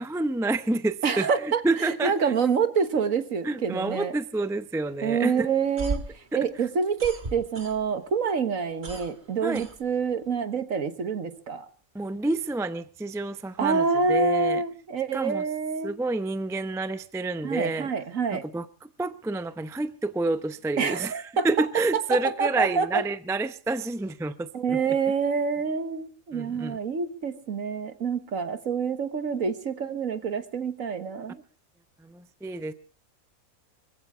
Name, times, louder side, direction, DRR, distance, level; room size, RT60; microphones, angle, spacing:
voice 1, 0.0-2.3 3.4-5.5 6.3-6.4 9.4-9.7 11.9-14.6 15.1-15.4 15.8-17.9 18.3-24.8 26.3-26.8 32.0-32.7, right 2 dB, 5° right, 0.4 m, -29 dB
voice 2, 1.0-1.6 1.9-4.1 5.0-6.1 6.3-11.7 13.6-16.0 17.4-18.4 20.8-21.7 21.9-23.0 24.5-31.4, right 5 dB, 65° right, 1.8 m, -27 dB
sound 1, 5.6-8.1 8.4-10.3, right 2 dB, 35° right, 1.8 m, -36 dB
23.5 x 15.5 x 3.6 m
omnidirectional pair, 1.5 m